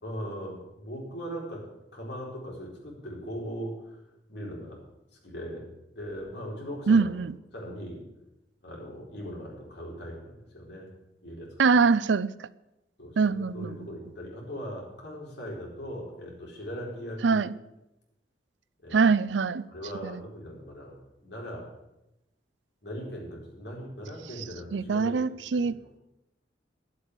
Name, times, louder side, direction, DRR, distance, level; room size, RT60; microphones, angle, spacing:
voice 1, 0.0-4.8 5.1-7.1 7.5-8.1 8.6-10.9 11.2-11.7 13.0-17.5 18.8-19.1 19.7-21.7 22.8-25.3 25.5-25.7, equal, 65° left, 4.5 m, -39 dB
voice 2, 6.9-7.3 11.6-12.5 13.2-13.8 17.2-17.5 18.9-19.6 20.0-20.2 24.7-25.8, right 5 dB, 90° right, 0.5 m, -23 dB
12.0 x 8.2 x 8.2 m
head